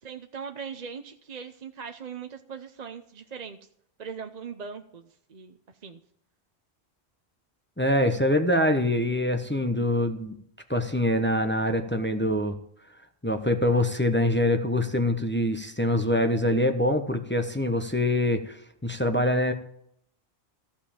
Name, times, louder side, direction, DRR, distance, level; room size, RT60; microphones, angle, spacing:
voice 1, 0.0-3.6 4.0-6.0, right 6 dB, 45° right, 6 dB, 0.8 m, -40 dB
voice 2, 7.8-10.3 10.7-12.6 13.2-19.5, left 1 dB, 10° left, 7 dB, 0.9 m, -24 dB
15.0 x 5.8 x 8.5 m, 0.69 s
omnidirectional pair, 1.1 m